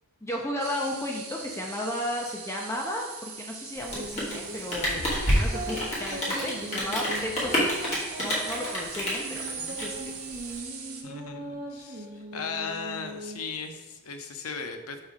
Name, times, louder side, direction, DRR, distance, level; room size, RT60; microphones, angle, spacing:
voice 1, 0.2-5.0 5.3-7.7 8.2-10.1, left 1 dB, 10° left, -1 dB, 0.5 m, -34 dB
sound 1, 0.6-11.0, right 5 dB, 75° right, 1.1 m, -41 dB
Rain, 3.8-10.6, equal, 30° left, 1.8 m, -29 dB
sound 2, 3.9-13.7, right 1 dB, 40° right, 0.7 m, -40 dB
voice 2, 11.0-15.0, left 5 dB, 80° left, 6 dB, 0.7 m, -37 dB
5.6 x 3.6 x 4.9 m, 1.2 s
head